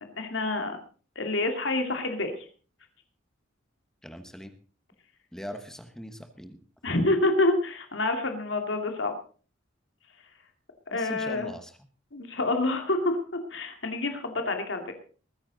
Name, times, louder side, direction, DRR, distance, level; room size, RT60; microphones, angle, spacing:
voice 1, 0.2-0.8 1.2-2.5 6.8-9.1 10.9-11.5 12.1-13.2 13.5-14.9, left 2 dB, 65° left, 5 dB, 2.3 m, -27 dB
voice 2, 4.0-4.5 5.3-6.6 10.9-11.7, equal, 5° left, 8 dB, 1.2 m, -41 dB
21.0 x 9.8 x 4.0 m, 0.39 s
head